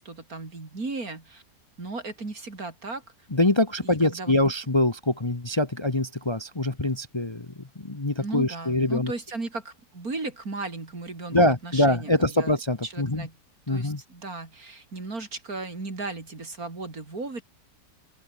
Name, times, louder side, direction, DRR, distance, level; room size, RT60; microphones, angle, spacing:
voice 1, 0.0-1.4 1.8-3.0 3.8-4.4 8.2-12.6 12.8-13.4 13.7-17.4, right 3 dB, 60° right, 4.4 m, -36 dB
voice 2, 3.3-9.1 11.3-13.3 13.7-14.0, left 1 dB, 20° left, 1.3 m, -24 dB
open air
omnidirectional pair, 1.7 m